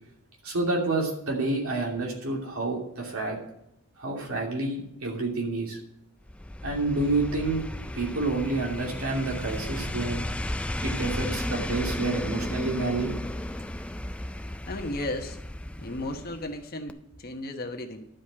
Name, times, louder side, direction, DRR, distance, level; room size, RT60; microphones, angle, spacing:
voice 1, 0.4-3.4 4.0-5.8 6.6-7.6 7.9-10.3 10.8-13.1, right 2 dB, 80° right, -1 dB, 2.8 m, -29 dB
sound 1, 6.3-16.6 16.9-17.0, left 1 dB, 5° left, 0.3 m, -34 dB
voice 2, 14.7-15.4 15.8-18.0, left 1 dB, 45° left, 3 dB, 1.1 m, -34 dB
11.5 x 5.2 x 7.5 m, 0.80 s
head